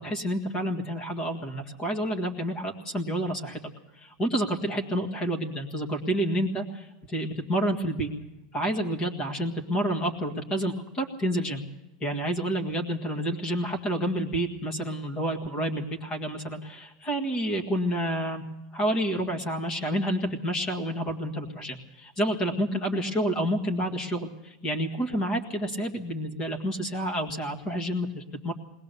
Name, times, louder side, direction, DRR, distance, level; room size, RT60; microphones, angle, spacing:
voice 1, 0.0-3.6 3.9-8.1 8.5-11.6 12.0-18.4 18.7-28.5, equal, 20° left, 4 dB, 1.8 m, -29 dB
21.0 x 18.5 x 6.9 m, 1.0 s
supercardioid pair, 165°, 3 cm